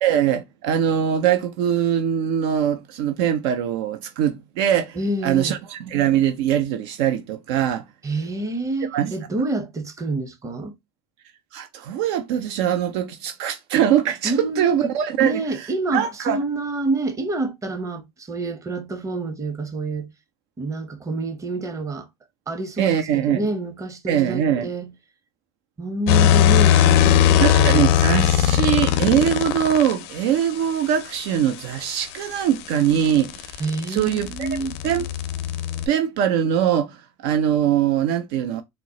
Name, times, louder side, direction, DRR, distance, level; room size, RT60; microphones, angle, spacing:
voice 1, 0.0-5.0 5.2-7.8 8.9-9.1 11.5-15.4 15.9-16.4 22.8-23.5 24.1-24.7 27.4-33.6 33.9-35.1 35.9-38.6, right 10 dB, 70° right, 0.4 m, -22 dB
voice 2, 4.9-5.6 8.0-10.7 14.2-14.9 15.2-20.1 20.6-22.1 22.5-24.9 25.8-27.9 33.6-34.7, right 2 dB, 25° right, 0.8 m, -27 dB
sound 1, 26.1-29.9 32.2-35.9, left 10 dB, 70° left, 0.5 m, -19 dB
3.6 x 2.0 x 2.8 m
hypercardioid pair, 80°, 14 cm